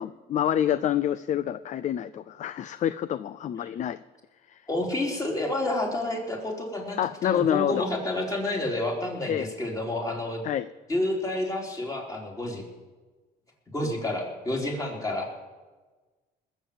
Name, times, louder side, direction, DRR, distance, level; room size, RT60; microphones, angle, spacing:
voice 1, 0.0-4.0 4.5-4.6 7.0-7.9 9.3-9.5 10.4-10.7, left 10 dB, 45° left, 15 dB, 0.5 m, -27 dB
voice 2, 4.7-10.4 10.9-12.6 13.7-15.3, left 1 dB, 20° left, 0 dB, 3.8 m, -29 dB
20.5 x 7.4 x 8.7 m, 1.3 s
cardioid pair, 110°, 17 cm